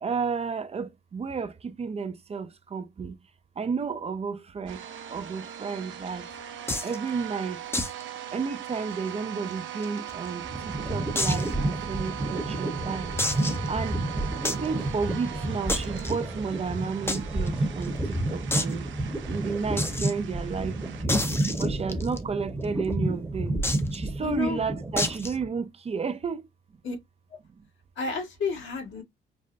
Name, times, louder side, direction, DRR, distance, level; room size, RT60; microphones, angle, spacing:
voice 1, 0.0-3.2 3.6-6.3 6.8-7.6 8.3-13.1 13.7-14.0 14.5-18.9 19.3-21.2 21.6-23.6 23.9-26.5, right 5 dB, 30° right, 0.5 m, -32 dB
sound 1, 4.7-21.0, right 10 dB, 70° right, 0.8 m, -40 dB
sound 2, 6.7-7.0 7.7-8.0 8.3-8.4 8.8-8.9 9.5-10.3 11.2-11.5 12.1-12.2 13.2-13.7 14.5-14.7 15.7-16.1 17.1-17.2 17.5-17.6 17.8-17.9 18.5-18.7 19.8-20.1 21.1-22.2 23.6-24.0 25.0-25.4, left 2 dB, 10° left, 0.6 m, -29 dB
sound 3, 10.1-25.5, right 1 dB, 10° right, 1.0 m, -31 dB
voice 2, 24.2-24.6 26.8-27.0 27.3-27.4 27.9-29.0, left 4 dB, 75° left, 1.6 m, -31 dB
5.2 x 2.1 x 2.5 m
cardioid pair, 90°, 20 cm